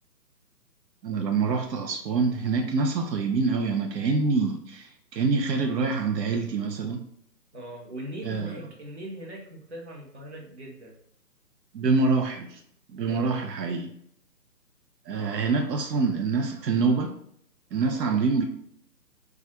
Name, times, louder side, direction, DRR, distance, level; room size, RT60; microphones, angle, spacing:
voice 1, 1.0-7.0 8.2-8.6 11.7-12.6 12.9-13.9 15.1-17.1 17.7-18.4, right 4 dB, 80° right, 5 dB, 0.5 m, -26 dB
voice 2, 7.5-11.0 13.1-13.4 17.9-18.2, right 1 dB, 45° right, -3 dB, 0.7 m, -40 dB
2.3 x 2.2 x 2.8 m, 0.67 s
hypercardioid pair, 180°, 49 cm